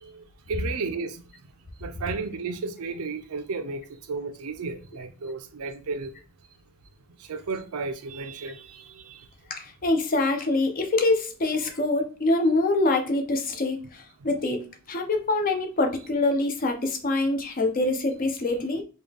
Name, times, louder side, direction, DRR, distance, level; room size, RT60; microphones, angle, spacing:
voice 1, 0.0-1.2 1.8-6.1 7.3-9.2, right 4 dB, 80° right, 0.5 m, -33 dB
voice 2, 9.5-18.8, left 2 dB, 40° left, 0.6 m, -25 dB
3.7 x 2.3 x 3.4 m
head